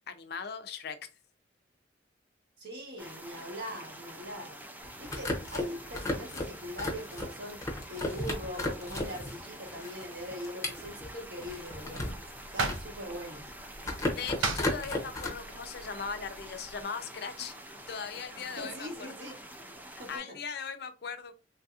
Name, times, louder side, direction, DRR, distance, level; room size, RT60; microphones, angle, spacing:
voice 1, 0.1-1.1 14.1-17.6 17.9-18.9 20.1-21.3, left 6 dB, 55° left, 0.5 m, -39 dB
voice 2, 2.6-4.6 5.0-7.6 7.9-12.1 12.5-13.5 18.6-19.3 20.0-20.4, equal, 60° right, 1.1 m, -41 dB
sound 1, 3.0-20.2, right 1 dB, 10° right, 0.3 m, -47 dB
sound 2, 4.8-9.4 9.7-12.2 12.6-13.5 13.8-15.3, left 1 dB, 15° left, 0.6 m, -34 dB
sound 3, 11.4-16.8, right 3 dB, 90° right, 0.5 m, -39 dB
3.3 x 2.7 x 2.4 m
head